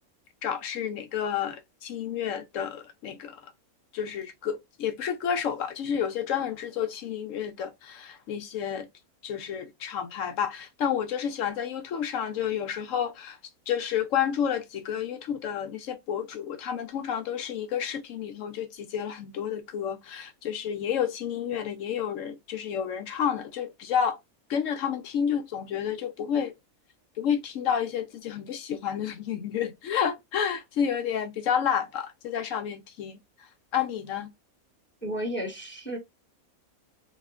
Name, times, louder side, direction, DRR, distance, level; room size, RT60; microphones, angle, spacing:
voice 1, 0.4-3.5 3.9-8.9 9.2-13.4 13.7-24.2 24.5-26.5 27.2-33.2 33.7-34.3, left 8 dB, 70° left, 0.9 m, -30 dB
voice 2, 35.0-36.0, equal, 10° left, 0.7 m, -32 dB
4.1 x 2.7 x 2.3 m
omnidirectional pair, 1.5 m